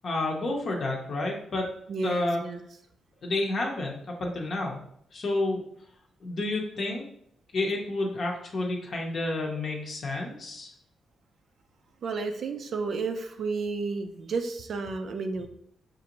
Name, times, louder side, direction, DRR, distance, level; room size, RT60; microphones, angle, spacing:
voice 1, 0.0-1.7 2.0-2.4 3.2-4.8 5.1-5.6 6.2-7.1 7.5-10.7, left 2 dB, 45° left, 0 dB, 0.7 m, -30 dB
voice 2, 1.9-2.6 12.0-15.5, right 4 dB, 50° right, 7 dB, 0.4 m, -32 dB
6.0 x 2.5 x 2.9 m, 0.70 s
wide cardioid pair, 155°, 0 cm